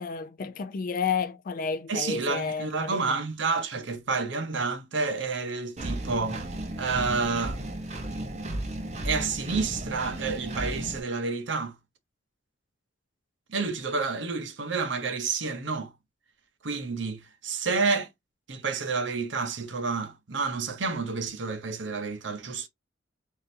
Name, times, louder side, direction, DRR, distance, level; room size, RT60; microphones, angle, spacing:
voice 1, 0.0-3.2, left 5 dB, 45° left, 0.4 m, -31 dB
voice 2, 1.9-6.5 6.8-7.6 9.0-11.8 13.5-15.9 16.6-18.1 18.5-22.7, right 4 dB, 70° right, 0.8 m, -29 dB
Engine, 5.8-11.0, right 1 dB, 35° right, 0.7 m, -34 dB
3.7 x 2.6 x 2.7 m
head